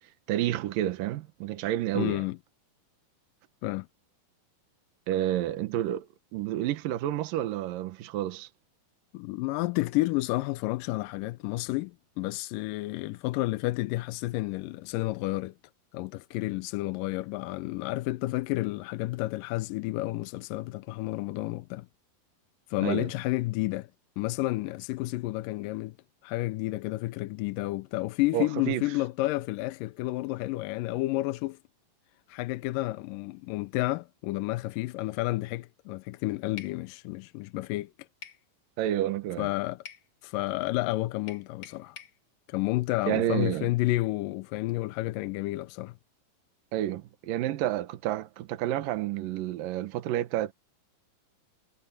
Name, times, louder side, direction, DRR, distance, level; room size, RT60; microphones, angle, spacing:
voice 1, 0.3-2.3 5.1-8.5 22.8-23.1 28.3-28.8 38.8-39.5 43.1-43.7 46.7-50.5, right 13 dB, 75° right, 2.7 m, -30 dB
voice 2, 2.0-2.4 3.6-3.9 9.1-15.5 15.9-21.9 22.7-23.9 24.2-25.9 26.2-31.6 32.3-37.9 39.4-39.8 40.2-42.0 42.5-45.9, left 19 dB, 80° left, 2.2 m, -31 dB
sound 1, 36.6-36.8 38.2-38.4 39.9-40.1 41.3-42.2, left 7 dB, 50° left, 2.9 m, -45 dB
omnidirectional pair, 4.1 m